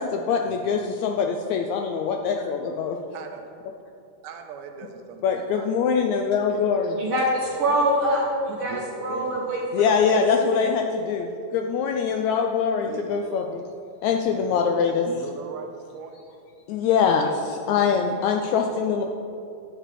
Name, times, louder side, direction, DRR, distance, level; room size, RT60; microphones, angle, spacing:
voice 1, 0.0-3.0 5.2-7.0 9.7-13.6 14.0-15.1 16.7-19.0, left 6 dB, 80° left, 4 dB, 1.7 m, -23 dB
voice 2, 3.1-3.5 4.2-6.2 6.5-6.8 8.6-9.5 12.8-13.1 14.3-14.5 15.1-16.3 18.7-19.0, right 5 dB, 80° right, 4 dB, 2.4 m, -39 dB
voice 3, 7.0-10.2, right 1 dB, 55° right, -2 dB, 1.5 m, -25 dB
11.5 x 4.9 x 7.5 m, 2.5 s
omnidirectional pair, 3.7 m